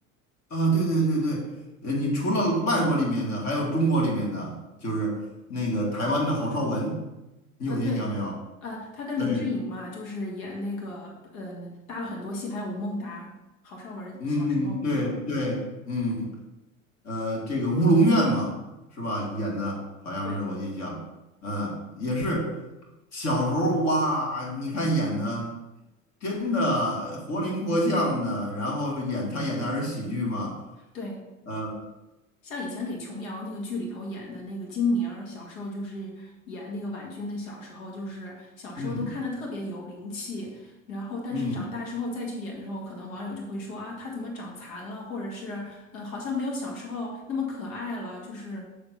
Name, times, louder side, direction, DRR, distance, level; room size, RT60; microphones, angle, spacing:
voice 1, 0.5-1.5 1.8-5.2 5.5-7.0 7.6-8.3 9.2-9.4 14.2-16.3 17.0-18.6 19.0-21.0 21.4-22.5 23.1-25.5 26.2-30.6 31.5-31.7 38.8-39.1 41.3-41.6, equal, 40° left, -2 dB, 2.5 m, -26 dB
voice 2, 7.7-8.1 8.6-13.3 13.6-15.0 20.2-20.4 30.9-31.2 32.4-48.6, left 2 dB, 65° left, -1 dB, 1.9 m, -34 dB
6.8 x 3.4 x 6.1 m, 0.98 s
figure-of-eight pair, 75°, 42 cm